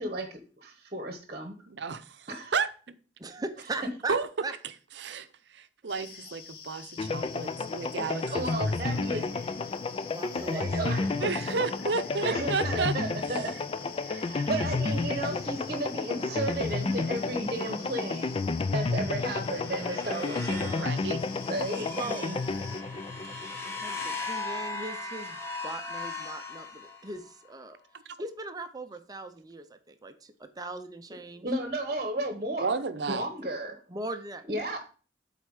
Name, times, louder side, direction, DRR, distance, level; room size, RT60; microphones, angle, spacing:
voice 1, 0.0-1.5 2.3-2.6 8.0-9.6 10.4-11.1 12.2-13.5 14.0-18.4 18.7-21.1 21.5-22.4 31.4-32.8 33.1-33.8 34.5-34.8, right 1 dB, 40° right, 1.1 m, -34 dB
voice 2, 1.7-2.7 4.1-4.3 5.0-5.3 5.5-9.3 11.2-12.9 20.8-21.2 32.6-33.3, right 4 dB, 70° right, 0.7 m, -32 dB
voice 3, 3.2-4.2 4.4-4.5 10.1-11.3 19.8-20.0 20.4-20.9 22.0-22.2 23.6-27.8 28.2-31.5 33.9-34.4, right 2 dB, 20° right, 0.6 m, -39 dB
sound 1, 5.9-22.8, left 6 dB, 55° left, 0.8 m, -46 dB
sound 2, 7.0-23.9, left 3 dB, 30° left, 0.4 m, -31 dB
sound 3, 19.0-27.3, left 3 dB, 15° left, 1.3 m, -39 dB
8.0 x 4.2 x 4.8 m
head